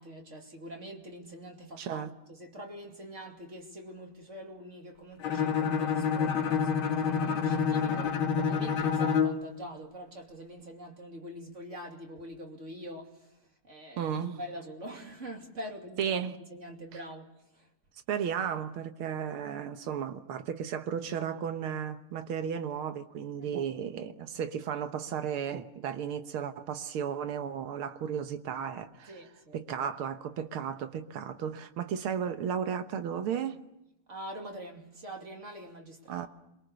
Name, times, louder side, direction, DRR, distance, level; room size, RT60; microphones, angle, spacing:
voice 1, 0.0-13.3 13.6-17.7 23.4-23.5 29.1-29.9 34.1-36.3, equal, 35° right, 2.9 m, -44 dB
voice 2, 1.8-2.1 14.0-14.4 16.0-16.4 18.1-29.1 29.5-33.6 36.1-36.3, right 8 dB, 80° right, 2.1 m, -34 dB
Bowed string instrument, 5.2-9.5, left 6 dB, 75° left, 2.6 m, -28 dB
27.5 x 23.0 x 6.9 m
omnidirectional pair, 2.3 m